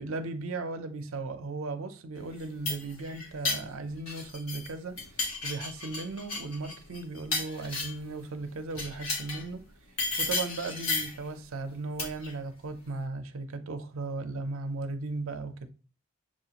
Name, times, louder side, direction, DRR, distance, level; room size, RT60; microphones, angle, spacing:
voice 1, 0.0-5.0 5.4-9.7 10.2-15.7, right 3 dB, 70° right, 0.5 m, -36 dB
sound 1, 2.3-4.7 5.0-8.1 8.7-9.5 10.0-11.2 12.0-12.3, left 3 dB, 75° left, 1.3 m, -33 dB
7.2 x 2.4 x 2.9 m
head